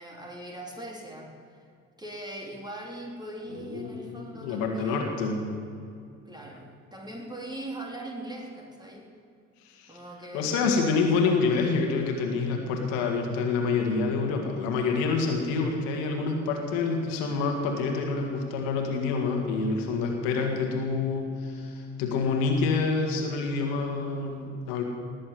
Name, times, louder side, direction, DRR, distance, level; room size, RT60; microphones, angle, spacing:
voice 1, 0.0-1.6 2.0-5.1 6.3-9.1 9.9-10.8, right 1 dB, 10° right, 0 dB, 3.6 m, -40 dB
voice 2, 3.6-5.5 9.6-10.0 10.3-24.8, left 4 dB, 65° left, 2 dB, 2.1 m, -27 dB
19.0 x 7.5 x 9.3 m, 2.4 s
figure-of-eight pair, 50°, 39 cm